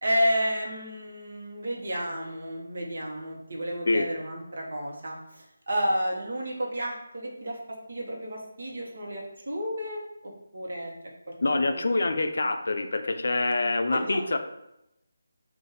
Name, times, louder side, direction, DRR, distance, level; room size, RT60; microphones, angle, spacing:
voice 1, 0.0-7.6 7.9-10.9 11.5-12.1 13.9-14.2, equal, 65° right, -1 dB, 1.0 m, -31 dB
voice 2, 11.4-14.4, left 2 dB, 65° left, 7 dB, 0.4 m, -26 dB
4.0 x 2.5 x 4.0 m, 0.86 s
figure-of-eight pair, 170°, 0 cm